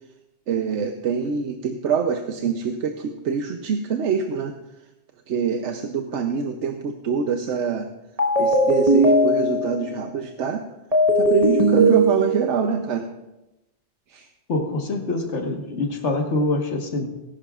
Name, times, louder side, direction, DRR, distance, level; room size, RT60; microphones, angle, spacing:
voice 1, 0.5-4.5 5.3-7.9 8.4-10.6 11.2-13.1 14.1-14.3, right 6 dB, 85° right, 6 dB, 1.0 m, -25 dB
sound 1, 8.2-9.9 10.9-12.6, right 1 dB, 30° right, 1.5 m, -18 dB
voice 2, 14.5-17.1, left 2 dB, 75° left, 3 dB, 1.7 m, -25 dB
18.5 x 11.0 x 2.4 m, 0.97 s
omnidirectional pair, 1.2 m